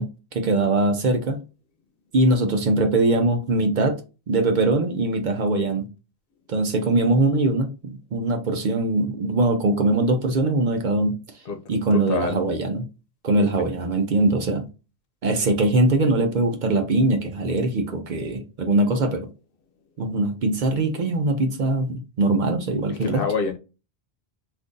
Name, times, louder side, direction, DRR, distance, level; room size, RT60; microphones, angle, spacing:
voice 1, 0.0-1.4 2.1-4.0 4.3-5.9 6.5-11.2 11.7-12.8 13.2-14.7 15.2-19.3 20.0-23.2, right 2 dB, 55° right, 0.7 m, -22 dB
voice 2, 11.9-12.3 23.0-23.6, left 5 dB, 65° left, 0.9 m, -26 dB
2.5 x 2.5 x 3.6 m
omnidirectional pair, 1.0 m